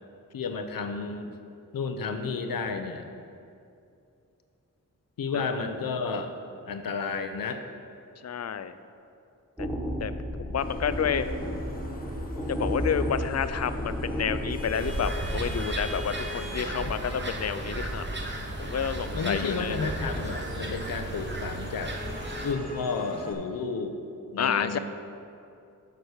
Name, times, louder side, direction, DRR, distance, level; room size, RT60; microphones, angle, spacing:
voice 1, 0.3-1.3 1.7-3.1 5.2-6.3 6.7-7.6 19.1-21.9 22.4-24.0 24.3-24.8, left 4 dB, 85° left, 7 dB, 0.7 m, -32 dB
voice 2, 8.2-8.7 9.6-9.7 10.0-10.1 10.4-11.3 12.5-18.1 18.6-19.8 24.4-24.8, left 7 dB, 50° left, 12 dB, 0.4 m, -30 dB
sound 1, 9.6-14.9, equal, 5° right, 1.0 m, -32 dB
Vehicle horn car horn honking / Traffic noise roadway noise, 10.6-23.3, left 2 dB, 25° left, 1.1 m, -42 dB
sound 2, 14.7-22.5, right 2 dB, 35° right, 1.0 m, -34 dB
7.0 x 6.2 x 6.5 m, 2.6 s
wide cardioid pair, 105°, 33 cm